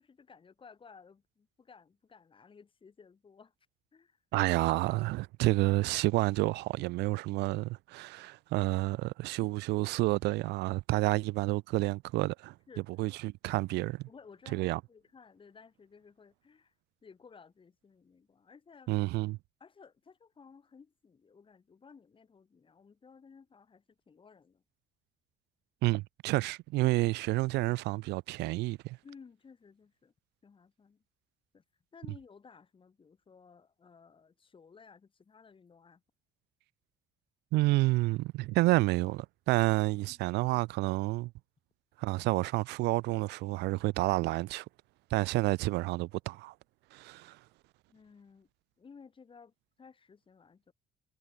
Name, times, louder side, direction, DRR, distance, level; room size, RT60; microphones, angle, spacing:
voice 1, 0.0-3.5 3.9-4.2 9.4-9.6 12.7-12.9 14.1-16.7 17.0-19.0 19.6-24.6 29.0-30.1 30.4-31.0 31.5-31.6 31.9-36.0 40.1-40.2 47.9-48.5 48.8-50.7, left 5 dB, 30° left, 4.8 m, -56 dB
voice 2, 4.3-12.5 13.0-14.0 14.5-14.8 18.9-19.4 25.8-29.0 37.5-41.3 42.0-44.6 45.1-46.5 46.9-47.4, right 20 dB, 85° right, 0.9 m, -29 dB
cardioid pair, 110°, 17 cm